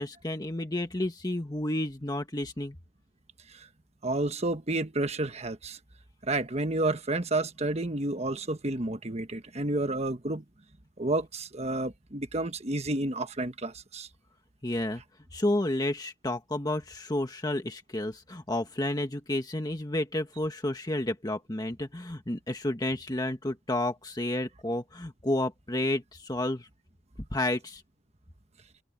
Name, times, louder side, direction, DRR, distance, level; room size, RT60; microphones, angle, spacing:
voice 1, 0.0-2.8 14.6-15.0 15.3-26.7 27.3-27.8, left 1 dB, 20° left, 1.4 m, -31 dB
voice 2, 4.0-5.8 6.2-10.4 11.0-14.1, right 2 dB, 35° right, 1.3 m, -30 dB
head